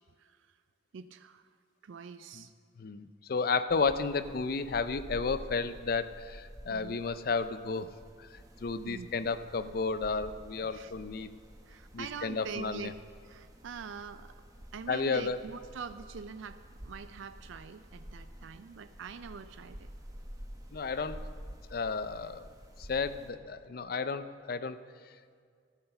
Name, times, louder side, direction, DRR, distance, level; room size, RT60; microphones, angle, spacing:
voice 1, 0.2-0.6 0.9-1.5 1.8-2.5 6.7-7.0 8.8-9.1 10.7-10.9 11.7-12.9 13.2-14.3 14.7-19.9, right 6 dB, 75° right, 11 dB, 0.4 m, -44 dB
voice 2, 2.8-7.9 8.2-8.3 8.6-11.3 11.9-12.9 14.9-15.4 20.7-21.2 21.7-22.5 22.8-24.8, left 4 dB, 50° left, 12 dB, 0.4 m, -32 dB
sound 1, 3.7-23.3, equal, 15° right, 0.9 m, -50 dB
12.5 x 7.9 x 6.8 m, 2.1 s
head